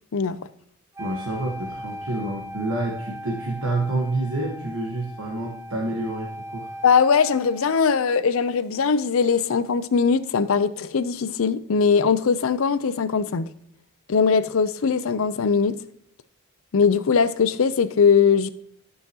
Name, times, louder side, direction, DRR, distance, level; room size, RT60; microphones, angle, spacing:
Wind instrument woodwind instrument, 0.9-7.9, equal, 10° right, 0.5 m, -38 dB
voice 1, 1.0-6.7, right 2 dB, 70° right, 1.3 m, -28 dB
voice 2, 6.8-13.5 14.1-15.8 16.7-18.5, left 6 dB, 70° left, 0.5 m, -20 dB
13.0 x 5.6 x 2.8 m
head